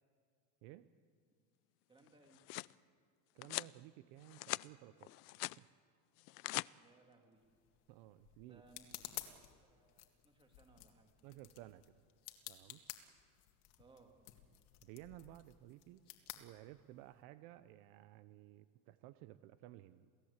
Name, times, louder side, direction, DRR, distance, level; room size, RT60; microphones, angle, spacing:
voice 1, 1.9-2.5 6.8-7.4 8.5-9.2 9.6-11.1 13.8-14.1, right 3 dB, 10° right, 3 dB, 2.3 m, -65 dB
sound 1, 2.1-2.7 3.4-3.7 4.2-4.7 5.0-5.6 6.2-6.7, left 25 dB, 80° left, 0.6 m, -42 dB
voice 2, 3.3-5.2 5.6-5.7 7.9-8.6 11.2-12.0 12.5-12.8 14.8-20.1, right 15 dB, 55° right, 13 dB, 0.8 m, -56 dB
sound 2, 7.4-17.2, left 15 dB, 65° left, 2.1 m, -54 dB
28.5 x 17.0 x 8.2 m, 2.2 s
cardioid pair, 170°, 46 cm